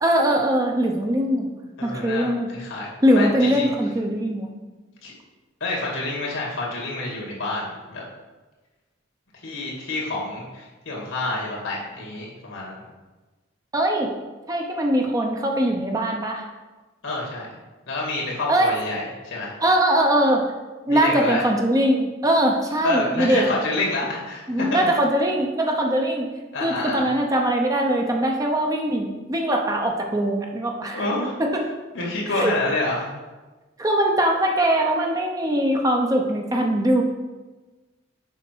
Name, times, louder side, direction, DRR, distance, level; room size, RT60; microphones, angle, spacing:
voice 1, 0.0-1.5 1.8-2.5 3.0-4.5 13.7-14.1 14.5-16.4 18.5-18.7 19.6-20.4 20.9-23.4 24.5-26.3 26.6-31.1 31.4-31.6 32.3-32.5 33.8-37.0, right 1 dB, 15° right, 1 dB, 0.6 m, -21 dB
voice 2, 1.8-3.7 5.0-5.1 5.6-8.0 9.3-12.8 17.0-17.5 17.9-19.5 20.9-21.4 22.8-24.9 26.5-27.1 30.9-31.4 31.9-33.1, left 2 dB, 75° left, -3 dB, 2.3 m, -28 dB
7.1 x 5.0 x 4.6 m, 1.2 s
head